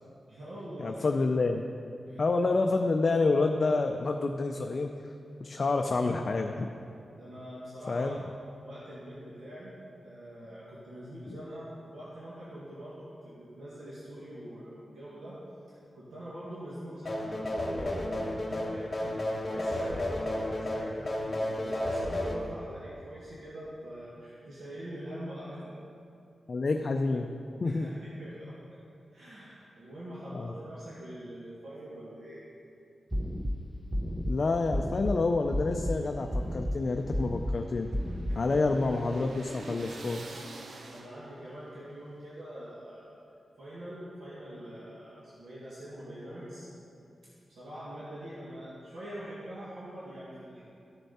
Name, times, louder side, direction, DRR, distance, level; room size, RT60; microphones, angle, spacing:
voice 1, 0.3-1.0 2.1-2.2 7.2-8.2 8.6-9.7 10.0-15.4 15.7-25.7 27.6-28.8 29.1-32.4 38.3-38.6 40.9-43.1 43.6-46.7 47.5-50.6, equal, 85° right, -9 dB, 2.1 m, -44 dB
voice 2, 0.8-1.6 2.2-4.9 5.4-6.7 7.9-8.2 11.3-11.4 26.5-27.3 27.6-27.9 30.3-30.5 34.3-37.9 38.4-40.4, left 3 dB, 45° left, 4 dB, 0.4 m, -28 dB
sound 1, 17.0-22.4, left 1 dB, 25° left, 1.2 m, -32 dB
sound 2, 33.1-33.5 33.9-34.3 34.7-35.1 35.5-35.9 36.3-36.7 37.1-37.5 37.9-38.3, equal, 5° right, 0.6 m, -31 dB
sound 3, 36.0-41.5, right 2 dB, 70° right, 0.8 m, -48 dB
14.0 x 6.8 x 4.3 m, 2.6 s
wide cardioid pair, 135°, 0 cm